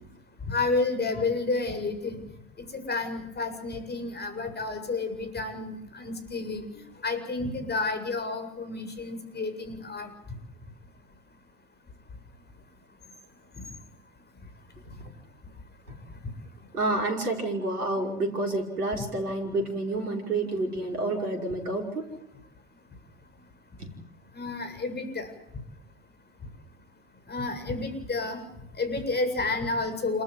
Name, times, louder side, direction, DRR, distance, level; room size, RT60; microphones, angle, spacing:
voice 1, 0.4-2.2 2.7-10.1 24.3-25.3 27.3-28.4 28.8-30.2, left 3 dB, 20° left, 7 dB, 7.7 m, -30 dB
voice 2, 16.7-22.1 23.8-23.9, right 2 dB, 85° right, 3 dB, 5.8 m, -29 dB
28.5 x 14.5 x 9.4 m, 0.82 s
hypercardioid pair, 85°, 44 cm